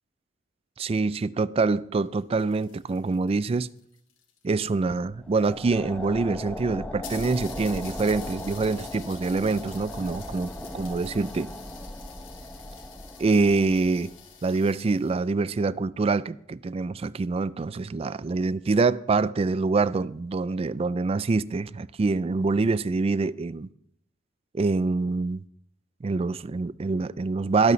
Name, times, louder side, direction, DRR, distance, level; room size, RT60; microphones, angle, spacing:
voice 1, 0.8-3.7 4.4-11.5 13.2-14.1 14.4-23.7 24.5-25.4 26.0-27.7, right 3 dB, 30° right, 0.3 m, -25 dB
sound 1, 2.0-4.8 5.7-5.8 6.0-6.1 6.5-6.6 7.0-15.2, left 8 dB, 85° left, 2.7 m, -47 dB
sound 2, 5.1-14.4, left 1 dB, 5° left, 0.9 m, -39 dB
22.5 x 8.4 x 3.2 m
head